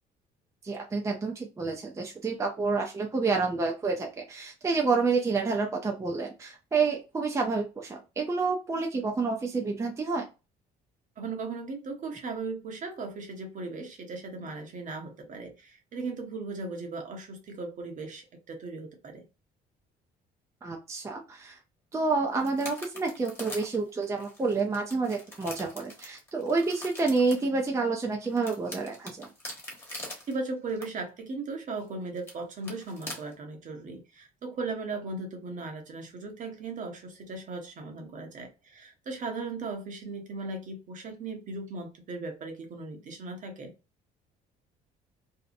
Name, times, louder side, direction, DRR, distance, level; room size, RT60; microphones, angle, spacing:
voice 1, 0.6-10.3 20.6-21.6 21.9-29.3, right 4 dB, 15° right, 0.4 m, -29 dB
voice 2, 11.2-19.3 30.3-43.7, right 3 dB, 50° right, 0.9 m, -37 dB
sound 1, 22.3-27.5 28.0-30.4 30.7-30.8 31.8-31.9 32.2-32.3 32.6-33.3, left 1 dB, 15° left, 1.1 m, -43 dB
2.7 x 2.0 x 2.5 m
cardioid pair, 110°, 17 cm